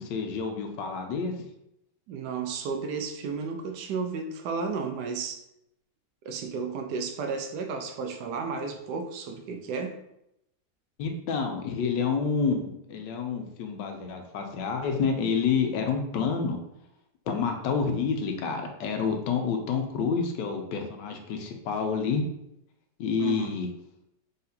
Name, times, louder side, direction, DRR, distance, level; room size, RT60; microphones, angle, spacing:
voice 1, 0.0-1.3 11.0-16.6 17.3-22.3 23.0-23.7, left 5 dB, 85° left, 4 dB, 1.3 m, -28 dB
voice 2, 2.1-5.4 6.2-10.0 23.2-23.5, right 5 dB, 75° right, 5 dB, 1.1 m, -33 dB
4.0 x 3.7 x 2.7 m, 0.81 s
omnidirectional pair, 1.9 m